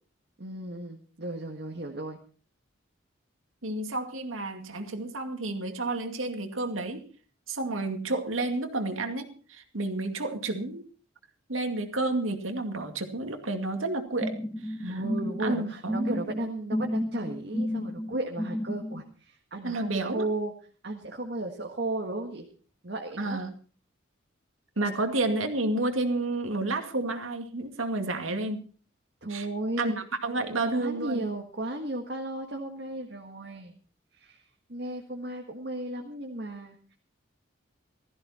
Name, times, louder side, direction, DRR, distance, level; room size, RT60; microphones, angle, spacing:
voice 1, 0.4-2.2 14.8-20.5 20.8-22.4 22.8-23.4 29.2-30.0 30.6-33.7 34.1-34.4 34.7-36.9, right 1 dB, 55° right, 1 dB, 1.7 m, -34 dB
voice 2, 3.6-7.0 7.5-10.8 11.5-14.3 14.6-14.9 15.4-16.2 19.6-20.3 23.2-23.5 24.8-28.6 29.3-29.5 29.8-29.9 30.2-31.2, right 2 dB, 90° right, 6 dB, 2.3 m, -30 dB
sound 1, 14.2-19.0, equal, 10° left, 1.1 m, -32 dB
16.0 x 14.5 x 4.3 m, 0.39 s
head